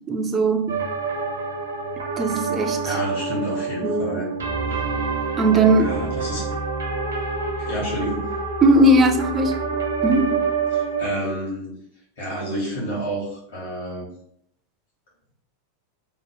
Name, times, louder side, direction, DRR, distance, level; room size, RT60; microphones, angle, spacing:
voice 1, 0.1-0.9 2.2-2.8 3.8-4.2 5.4-6.0 8.6-9.5 10.0-10.4, right 1 dB, 20° right, 0.3 m, -18 dB
sound 1, 0.7-11.1, right 4 dB, 70° right, 0.5 m, -27 dB
voice 2, 2.8-4.3 5.8-6.5 7.6-8.3 10.7-11.8 12.2-14.1, right 1 dB, 55° left, 1.2 m, -29 dB
2.9 x 2.1 x 3.0 m
figure-of-eight pair, 90°, 0 cm